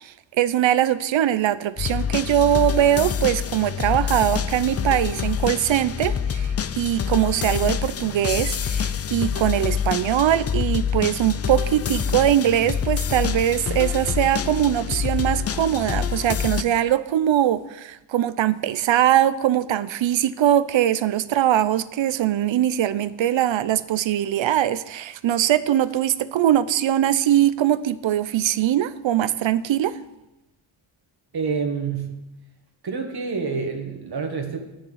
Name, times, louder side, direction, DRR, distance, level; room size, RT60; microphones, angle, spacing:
voice 1, 0.0-30.0, right 11 dB, 70° right, 15 dB, 0.7 m, -21 dB
sound 1, 1.8-16.6, left 7 dB, 35° left, 0.5 m, -26 dB
voice 2, 31.3-32.2 32.8-34.6, right 5 dB, 55° right, 3 dB, 1.7 m, -27 dB
10.5 x 6.7 x 7.9 m, 0.95 s
wide cardioid pair, 120°, 47 cm